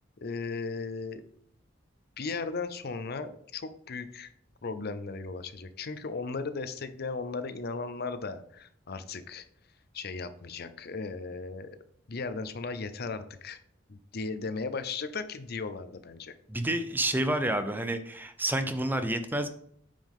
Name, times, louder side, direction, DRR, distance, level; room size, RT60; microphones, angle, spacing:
voice 1, 0.2-1.2 2.2-4.3 4.6-9.5 9.9-11.7 12.1-13.6 13.9-16.4, left 4 dB, 55° left, 11 dB, 0.6 m, -36 dB
voice 2, 16.5-19.5, right 1 dB, 10° right, 8 dB, 0.5 m, -29 dB
9.1 x 5.1 x 3.6 m, 0.65 s
head